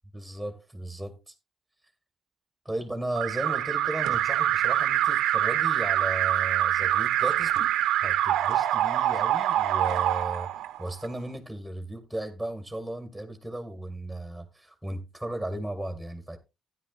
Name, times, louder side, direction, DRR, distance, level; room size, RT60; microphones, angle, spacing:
voice 1, 0.1-1.3 2.7-10.5 10.8-16.4, right 1 dB, ahead, 1.8 m, -36 dB
Alarm, 3.1-11.0, right 12 dB, 90° right, 0.8 m, -25 dB
13.0 x 10.0 x 2.4 m
cardioid pair, 90°, 0 cm